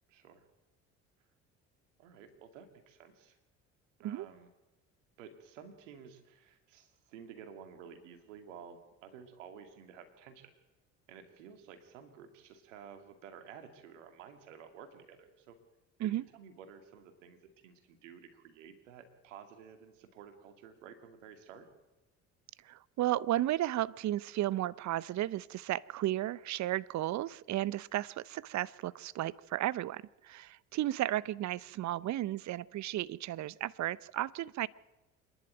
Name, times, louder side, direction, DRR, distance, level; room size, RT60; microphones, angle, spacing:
voice 1, 0.1-0.4 2.0-3.4 4.0-4.5 5.2-10.5 11.1-15.6 16.0-17.4 17.6-21.7, right 7 dB, 80° right, 7 dB, 2.5 m, -52 dB
voice 2, 22.7-34.7, right 14 dB, 50° right, 21 dB, 0.8 m, -34 dB
26.5 x 11.0 x 9.2 m, 1.0 s
hypercardioid pair, 60°, 37 cm